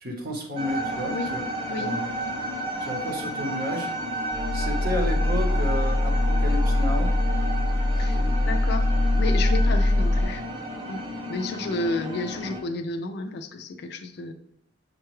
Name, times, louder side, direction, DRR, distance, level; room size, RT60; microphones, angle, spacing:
voice 1, 0.0-1.5 1.8-2.1 2.8-3.9 4.5-7.1 7.9-8.6, equal, 50° right, 1 dB, 0.9 m, -32 dB
sound 1, 0.6-12.6, equal, 25° right, 0.5 m, -32 dB
voice 2, 1.1-1.4 1.7-1.9 8.0-8.2 8.5-8.9 9.1-10.4 10.9-11.0 11.3-14.3, left 2 dB, 55° left, 7 dB, 0.3 m, -31 dB
sound 2, 4.3-10.2, left 1 dB, 80° right, 0.6 m, -23 dB
6.4 x 2.2 x 3.1 m, 0.74 s
head